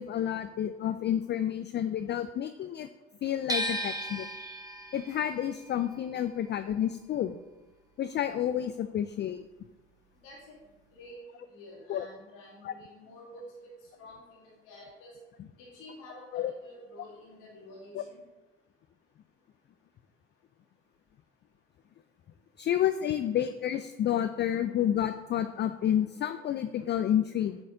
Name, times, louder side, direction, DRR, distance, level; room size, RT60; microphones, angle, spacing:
voice 1, 0.0-2.9 3.2-4.3 4.9-7.4 8.0-9.4 11.9-12.1 12.6-12.7 15.4-15.5 16.3-16.5 17.9-18.0 22.6-27.6, left 10 dB, 35° left, 10 dB, 0.4 m, -30 dB
sound 1, 3.5-9.5 9.8-11.1, right 1 dB, 10° right, 1.1 m, -38 dB
voice 2, 10.2-10.6 10.9-13.7 14.0-15.1 15.6-18.2, left 1 dB, 70° left, -5 dB, 2.4 m, -49 dB
9.1 x 4.1 x 3.7 m, 1.1 s
hypercardioid pair, 60°, 33 cm